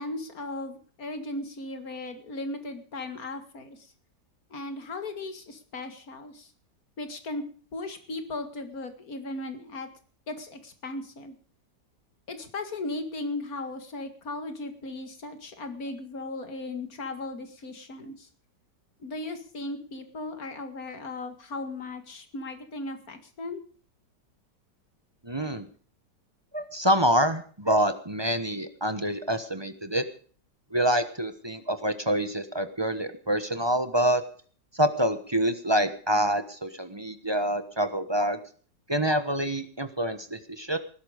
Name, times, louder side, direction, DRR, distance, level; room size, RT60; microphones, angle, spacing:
voice 1, 0.0-3.9 4.5-6.5 7.0-7.4 7.7-9.9 10.3-11.4 12.3-18.3 19.0-23.6, left 2 dB, 55° left, 8 dB, 2.5 m, -37 dB
voice 2, 25.2-25.7 26.5-30.0 30.7-34.2 34.7-38.4 38.9-40.8, right 1 dB, 20° right, 10 dB, 1.0 m, -26 dB
19.0 x 11.5 x 5.1 m, 0.44 s
omnidirectional pair, 1.9 m